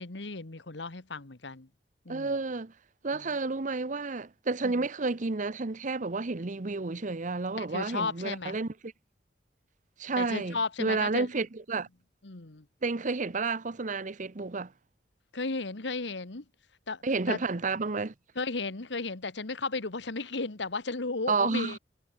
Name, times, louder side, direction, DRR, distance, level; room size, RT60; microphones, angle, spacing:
voice 1, 0.0-1.7 2.0-2.3 3.1-3.3 4.6-4.8 7.6-8.6 10.2-11.3 12.2-12.6 15.3-16.4 16.9-17.4 18.3-21.8, left 3 dB, 85° left, 1.5 m, -34 dB
voice 2, 2.1-2.7 3.0-8.9 10.0-11.9 12.8-14.7 17.0-18.1 21.3-21.8, right 3 dB, 45° right, 0.9 m, -31 dB
head